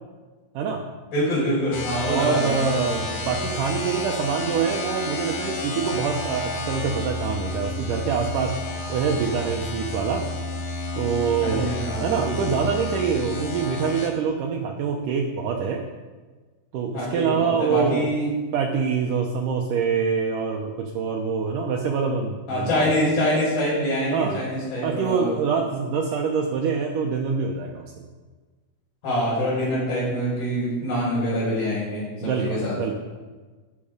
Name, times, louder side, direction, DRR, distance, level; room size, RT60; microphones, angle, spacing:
voice 1, 1.1-3.2 11.4-12.4 16.9-18.3 22.5-25.3 29.0-32.8, equal, 70° left, -11 dB, 7.0 m, -25 dB
sound 1, 1.7-14.1, left 2 dB, 50° left, 1.8 m, -31 dB
voice 2, 2.1-8.6 8.9-10.2 11.0-11.7 12.0-15.8 16.7-18.1 18.5-22.8 24.1-24.4 24.8-27.8 32.2-33.0, right 6 dB, 70° right, 1 dB, 2.3 m, -25 dB
12.5 x 11.0 x 5.1 m, 1.3 s
omnidirectional pair, 4.2 m